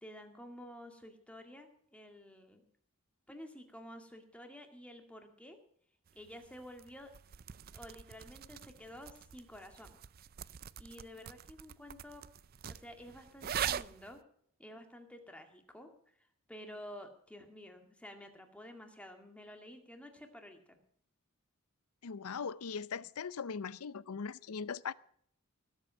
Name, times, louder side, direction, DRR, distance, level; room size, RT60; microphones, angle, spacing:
voice 1, 0.0-2.6 3.3-5.6 6.1-7.1 7.7-9.9 10.8-12.2 12.7-14.2 14.6-20.8, equal, 5° left, 5 dB, 2.1 m, -51 dB
sound 1, 6.1-14.2, right 9 dB, 45° right, 0.4 m, -43 dB
voice 2, 22.0-24.9, left 6 dB, 80° left, 19 dB, 0.6 m, -40 dB
19.5 x 8.1 x 6.2 m, 0.65 s
head